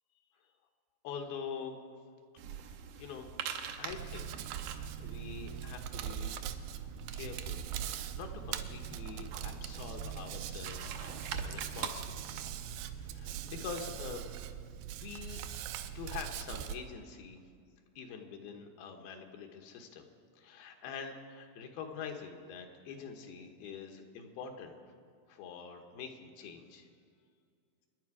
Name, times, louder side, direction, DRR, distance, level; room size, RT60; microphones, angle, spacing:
voice 1, 1.0-1.8 3.0-3.3 3.8-6.3 7.1-14.2 14.9-15.4 15.9-17.4 18.0-20.1 20.4-24.7 25.3-26.9, left 6 dB, 80° left, 3 dB, 3.0 m, -45 dB
sound 1, 2.4-11.9, right 7 dB, 70° right, 2.2 m, -45 dB
Hands, 3.9-16.8, right 9 dB, 85° right, 2.6 m, -41 dB
25.0 x 10.5 x 4.9 m, 2.2 s
omnidirectional pair, 4.4 m